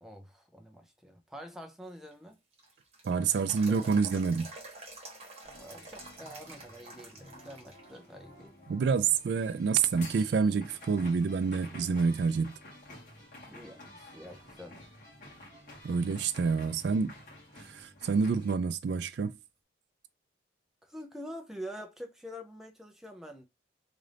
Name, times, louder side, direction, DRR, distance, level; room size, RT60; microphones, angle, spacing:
voice 1, 0.0-2.4 5.5-8.5 13.5-14.8 20.8-23.4, equal, ahead, 0.5 m, -46 dB
sound 1, 1.9-8.0 8.4-8.5 9.2-9.7 10.2-10.3 10.8-12.0 12.3-12.4 15.8-15.9 18.9-19.0, right 2 dB, 35° right, 1.1 m, -49 dB
voice 2, 3.0-4.5 8.7-12.5 15.8-17.1 17.7-19.4, right 5 dB, 60° right, 0.3 m, -28 dB
sound 2, 5.4-18.5, left 1 dB, 40° left, 1.9 m, -51 dB
3.8 x 2.5 x 3.3 m
head